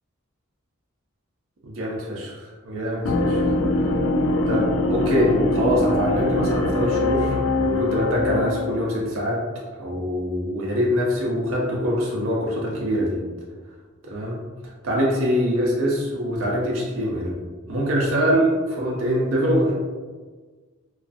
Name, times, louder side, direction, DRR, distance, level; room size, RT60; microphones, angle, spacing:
voice 1, 1.6-2.4 2.6-3.4 4.5-9.4 9.8-13.2 14.0-14.4 14.8-17.4 17.7-19.7, equal, 75° right, -4 dB, 0.5 m, -24 dB
sound 1, 3.0-8.8, left 2 dB, 80° left, 0.3 m, -22 dB
2.4 x 2.3 x 2.5 m, 1.4 s
head